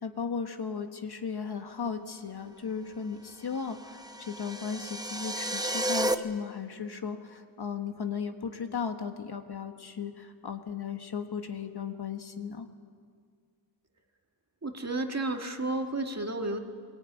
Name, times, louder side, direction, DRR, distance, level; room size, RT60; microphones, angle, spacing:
voice 1, 0.0-12.7, left 6 dB, 55° left, 6 dB, 1.5 m, -36 dB
sound 1, 3.6-6.1, right 1 dB, 10° right, 0.8 m, -32 dB
voice 2, 14.6-16.6, right 2 dB, 35° right, 4 dB, 1.9 m, -32 dB
21.5 x 21.0 x 9.4 m, 2.1 s
wide cardioid pair, 115°, 46 cm